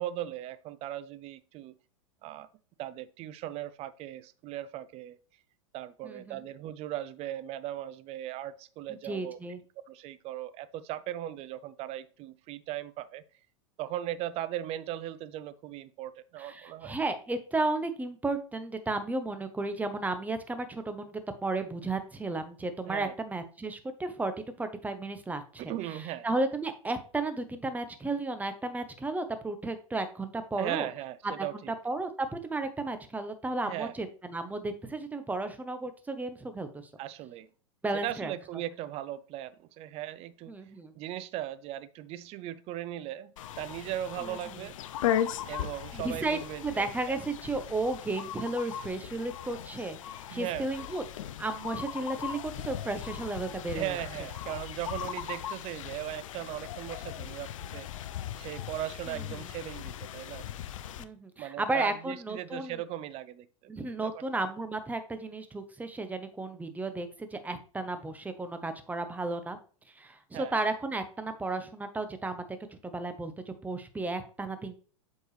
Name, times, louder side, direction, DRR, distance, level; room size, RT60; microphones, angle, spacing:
voice 1, 0.0-1.7 2.2-2.5 2.8-5.2 5.7-9.4 9.9-13.2 13.8-17.0 22.8-23.1 25.6-26.3 30.6-31.7 33.6-33.9 37.0-37.5 37.9-40.5 41.0-44.7 45.5-47.2 50.3-50.7 53.7-57.9 58.4-60.4 61.4-63.7 64.0-64.2 70.3-70.5, right 13 dB, 35° right, 0.5 m, -38 dB
voice 2, 6.0-6.4 8.9-9.6 16.4-24.3 24.6-30.9 31.2-36.9 37.8-38.3 40.5-40.9 44.2-44.7 45.9-51.0 51.4-54.0 59.1-59.5 61.0-62.8 63.7-69.6 69.9-72.4 72.8-74.7, right 2 dB, 10° right, 0.9 m, -34 dB
sound 1, 43.4-61.0, left 10 dB, 70° left, 0.6 m, -38 dB
7.8 x 4.6 x 3.3 m
hypercardioid pair, 105°, 17 cm